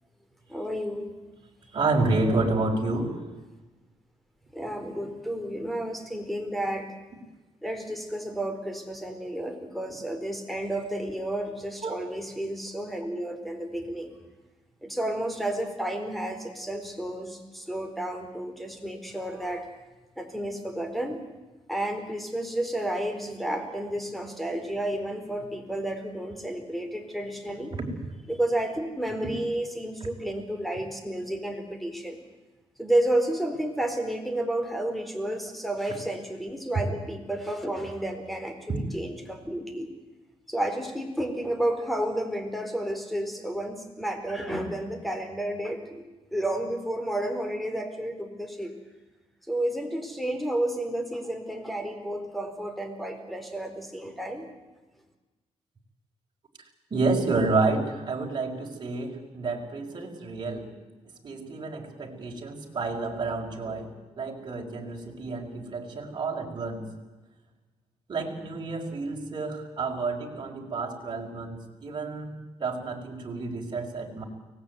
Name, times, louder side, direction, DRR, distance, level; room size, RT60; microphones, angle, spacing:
voice 1, 0.5-1.1 4.5-6.9 7.6-14.2 14.8-19.7 20.2-21.2 21.7-27.7 28.3-32.2 32.8-39.9 40.5-46.0 46.3-48.7 49.5-54.5, right 1 dB, ahead, 6 dB, 4.3 m, -31 dB
voice 2, 1.7-3.2 11.8-11.9 27.7-27.8 38.7-38.8 56.9-60.7 61.2-63.9 64.2-66.9 68.1-72.3 72.6-74.2, right 3 dB, 40° right, 1 dB, 5.1 m, -29 dB
24.0 x 19.5 x 9.5 m, 1.2 s
cardioid pair, 105°, 12 cm